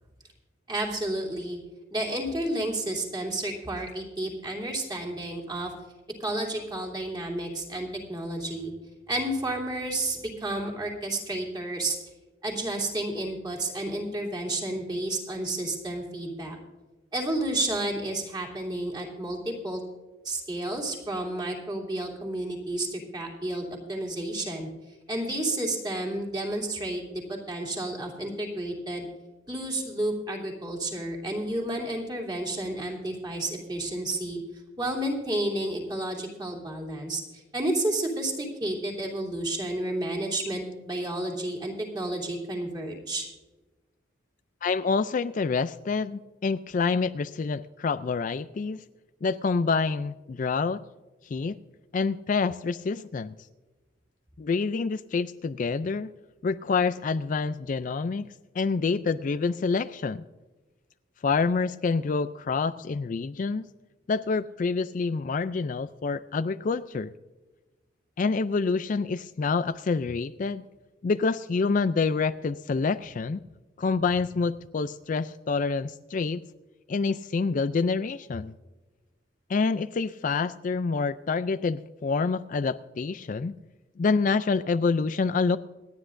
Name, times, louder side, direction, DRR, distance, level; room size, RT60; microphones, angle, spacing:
voice 1, 0.7-1.6 1.9-5.7 6.2-8.7 9.1-12.0 12.4-16.6 17.1-19.8 20.2-24.7 25.1-29.1 29.5-34.4 34.8-43.3, right 1 dB, 20° right, -1 dB, 3.0 m, -31 dB
voice 2, 44.6-48.8 49.2-50.8 51.2-51.6 51.9-53.4 54.4-56.1 56.4-58.3 58.5-60.2 61.2-63.7 64.1-67.1 68.2-70.6 71.0-73.4 73.8-76.4 76.9-78.5 79.5-83.6 84.0-85.6, left 4 dB, 40° left, 12 dB, 0.3 m, -27 dB
27.0 x 10.0 x 2.6 m, 1.2 s
head